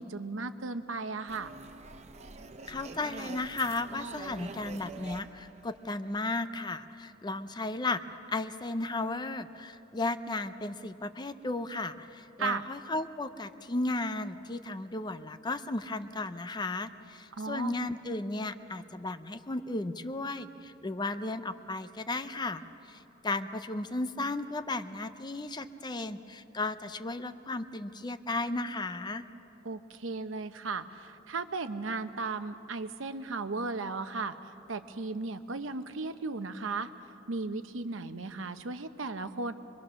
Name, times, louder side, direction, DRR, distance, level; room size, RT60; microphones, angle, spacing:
voice 1, 0.0-1.5 12.4-12.6 17.4-17.8 29.6-34.4 34.7-36.9 37.3-39.5, right 3 dB, 75° right, 10 dB, 0.9 m, -35 dB
sound 1, 1.3-6.4, right 3 dB, 35° right, 0.8 m, -46 dB
voice 2, 2.7-8.0 8.3-29.2, left 2 dB, 20° left, 11 dB, 0.6 m, -35 dB
24.5 x 22.5 x 6.3 m, 2.9 s
head